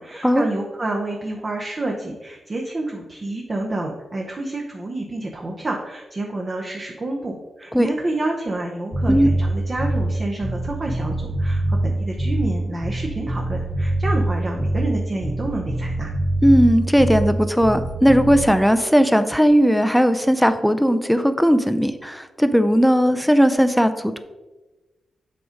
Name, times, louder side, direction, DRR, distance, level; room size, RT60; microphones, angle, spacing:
voice 1, 0.0-16.1, right 2 dB, 30° right, 0 dB, 0.8 m, -28 dB
Bass guitar, 8.9-10.2 10.4-12.6 12.8-15.0 15.2-17.4 17.6-18.5, right 1 dB, 65° right, 2.2 m, -24 dB
voice 2, 16.4-24.2, equal, ahead, 10 dB, 0.4 m, -17 dB
7.7 x 3.9 x 5.1 m, 1.2 s
wide cardioid pair, 135°, 0 cm